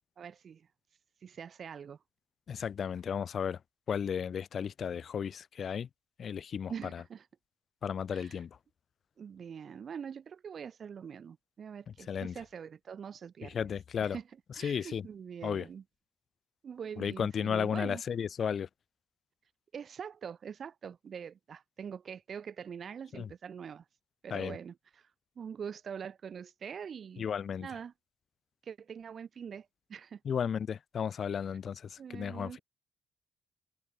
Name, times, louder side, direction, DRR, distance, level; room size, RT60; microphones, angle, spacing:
voice 1, 0.2-0.7 1.2-2.0 6.7-7.3 8.1-8.4 9.2-13.7 14.0-14.2 14.5-15.8 16.6-18.0 19.7-23.9 24.2-27.2 27.6-27.9 28.6-30.2 32.0-32.6, right 7 dB, 50° right, 6.7 m, -44 dB
voice 2, 2.5-3.6 3.9-5.9 6.2-7.0 7.8-8.5 12.1-12.3 13.4-14.2 14.6-15.1 15.4-15.7 17.0-18.7 23.1-23.3 24.3-24.6 27.2-27.7 30.2-32.6, left 7 dB, 55° left, 2.8 m, -34 dB
supercardioid pair, 65°, 0 cm